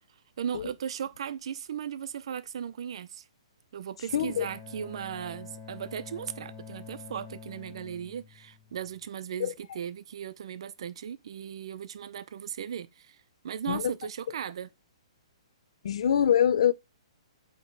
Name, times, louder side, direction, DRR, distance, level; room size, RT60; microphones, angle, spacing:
voice 1, 0.4-3.2 3.7-13.2 13.4-14.7, right 8 dB, 60° right, 0.6 m, -37 dB
voice 2, 4.1-4.5 9.4-9.5 13.7-13.9 15.8-16.7, left 9 dB, 70° left, 0.5 m, -24 dB
Bowed string instrument, 4.1-9.1, left 6 dB, 25° left, 2.2 m, -47 dB
7.8 x 3.0 x 4.0 m
hypercardioid pair, 150°, 3 cm